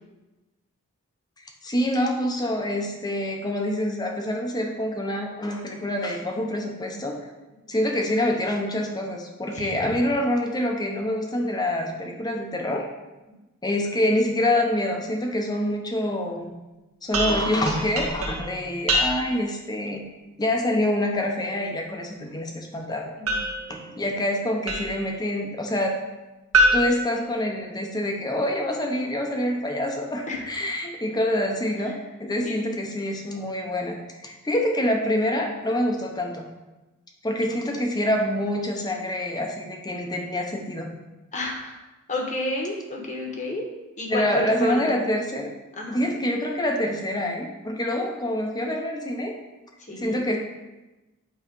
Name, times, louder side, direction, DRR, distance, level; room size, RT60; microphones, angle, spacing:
voice 1, 1.6-7.2 7.7-12.9 13.6-16.5 17.0-20.0 20.4-23.2 23.7-26.0 26.7-31.9 32.2-36.4 37.2-40.9 44.1-45.5 45.9-49.3 50.0-50.4, left 1 dB, 20° left, 2 dB, 0.8 m, -26 dB
sound 1, 17.1-19.5 23.3-25.1 26.5-28.0, right 1 dB, 90° right, 1.4 m, -26 dB
voice 2, 23.2-24.0 30.3-30.4 32.4-32.6 37.6-37.9 41.3-41.7 42.1-43.7 44.0-44.8 45.8-46.0 49.9-50.3, left 1 dB, 35° left, 0 dB, 1.2 m, -31 dB
8.4 x 3.2 x 5.3 m, 1.1 s
head